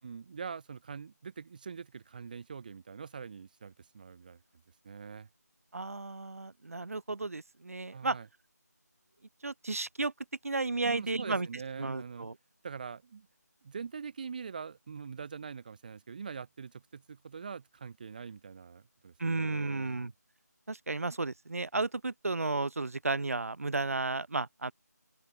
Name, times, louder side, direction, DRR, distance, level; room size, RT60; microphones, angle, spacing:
voice 1, 0.0-4.4 4.8-5.3 7.9-8.3 10.8-12.3 12.6-13.3 13.6-20.1, right 6 dB, 30° right, 5.2 m, -43 dB
voice 2, 5.7-8.2 9.4-10.1 10.4-11.5 11.8-12.3 19.2-20.1 20.7-24.7, right 3 dB, 55° right, 6.4 m, -33 dB
open air
figure-of-eight pair, 170°, 9 cm